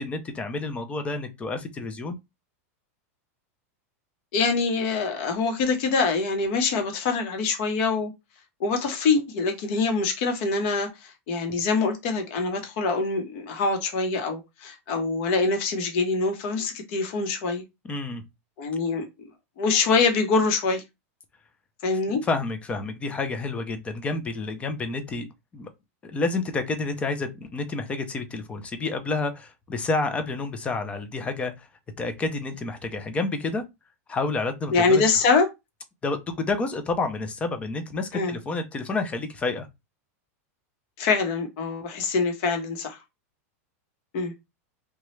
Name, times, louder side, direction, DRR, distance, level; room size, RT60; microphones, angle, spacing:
voice 1, 0.0-2.2 17.8-18.2 22.1-25.3 25.5-25.7 26.0-31.7 32.0-33.6 34.1-35.0 36.0-39.7, left 3 dB, 15° left, 0.5 m, -29 dB
voice 2, 4.3-8.1 8.6-17.6 18.6-19.3 19.6-20.8 21.8-22.2 34.7-35.5 38.1-38.4 41.0-43.0 44.1-44.3, left 4 dB, 50° left, 0.9 m, -24 dB
2.9 x 2.2 x 3.1 m
supercardioid pair, 150°, 8 cm